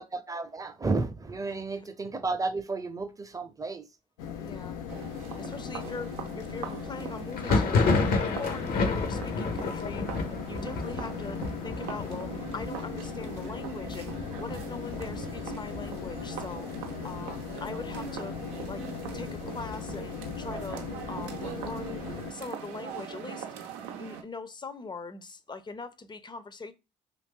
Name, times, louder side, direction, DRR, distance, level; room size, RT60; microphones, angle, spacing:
voice 1, 0.0-3.8, right 3 dB, 20° right, 0.6 m, -32 dB
voice 2, 1.5-1.9 4.4-5.1 5.4-10.1 10.5-11.4 11.6-18.3 18.7-18.8 19.1-20.8 21.1-23.5 24.0-26.7, left 4 dB, 25° left, 0.5 m, -41 dB
sound 1, 4.2-22.3, left 8 dB, 90° left, 0.4 m, -39 dB
sound 2, 4.9-24.2, right 8 dB, 80° right, 0.5 m, -41 dB
Thunder, 7.3-16.8 17.1-17.8 18.0-19.0 19.4-21.1, left 3 dB, 60° left, 0.7 m, -31 dB
2.6 x 2.5 x 3.6 m
hypercardioid pair, 55°, 17 cm